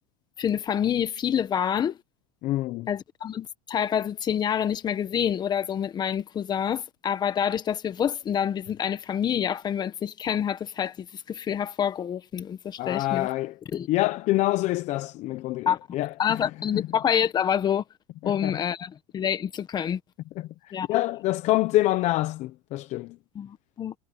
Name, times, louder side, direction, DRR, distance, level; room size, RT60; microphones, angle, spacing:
voice 1, 0.4-2.0 2.9-13.3 13.7-13.9 15.7-15.8 16.2-17.8 18.2-20.0 20.7-20.9 23.3-23.9, left 9 dB, 25° left, 1.3 m, -27 dB
voice 2, 2.4-2.9 12.8-13.5 13.9-16.9 18.2-18.6 20.4-23.2, left 17 dB, 45° left, 0.8 m, -27 dB
supercardioid pair, 145°, 16 cm